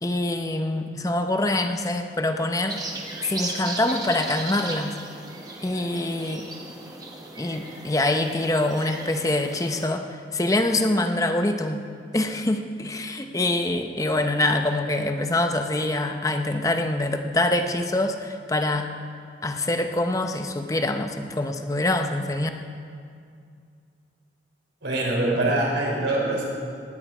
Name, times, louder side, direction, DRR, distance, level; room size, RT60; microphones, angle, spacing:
voice 1, 0.0-2.8 3.2-5.0 5.6-6.5 7.4-11.9 12.1-18.9 19.4-22.5, left 2 dB, 20° left, 6 dB, 0.7 m, -25 dB
sound 1, 2.7-9.9, right 2 dB, 20° right, 1.2 m, -37 dB
voice 2, 24.8-26.5, right 2 dB, 75° right, -2 dB, 3.6 m, -24 dB
19.0 x 9.5 x 4.9 m, 2.3 s
head